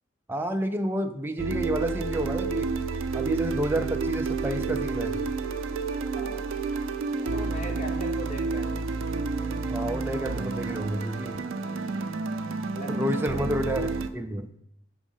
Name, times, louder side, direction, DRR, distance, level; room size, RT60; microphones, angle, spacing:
voice 1, 0.3-2.7 3.1-5.2 9.6-11.4 12.9-14.5, right 1 dB, 10° right, 5 dB, 0.4 m, -30 dB
sound 1, 1.4-14.1, right 4 dB, 80° right, 0.5 m, -30 dB
voice 2, 6.1-6.5 7.2-8.8 12.7-13.5, equal, 40° left, 2 dB, 0.9 m, -39 dB
sound 2, 8.4-12.2, right 3 dB, 75° left, 2.0 m, -49 dB
6.3 x 3.5 x 5.6 m, 0.76 s
head